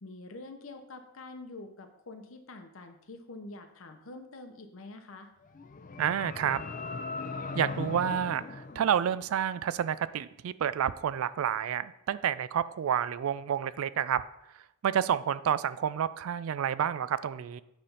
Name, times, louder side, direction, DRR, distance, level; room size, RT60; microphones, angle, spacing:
voice 1, 0.0-5.3, left 2 dB, 70° left, 6 dB, 0.8 m, -46 dB
sound 1, 5.4-9.7, left 3 dB, 40° left, 0.5 m, -39 dB
voice 2, 6.0-6.6 7.6-14.2 14.8-17.6, right 9 dB, 80° right, 16 dB, 0.3 m, -29 dB
9.1 x 3.4 x 5.5 m, 0.85 s
head